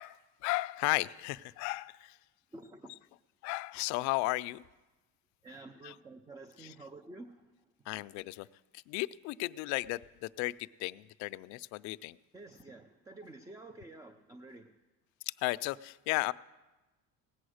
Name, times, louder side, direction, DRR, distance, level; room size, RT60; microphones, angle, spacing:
voice 1, 0.0-2.2 3.4-4.6 5.8-5.9 6.6-6.7 7.9-8.5 8.9-12.2 15.3-16.3, left 21 dB, 65° left, 15 dB, 0.4 m, -35 dB
voice 2, 2.5-2.9 5.4-7.5 12.3-14.7, right 2 dB, 10° right, 8 dB, 0.5 m, -50 dB
17.5 x 8.6 x 6.4 m, 1.1 s
cardioid pair, 150°, 32 cm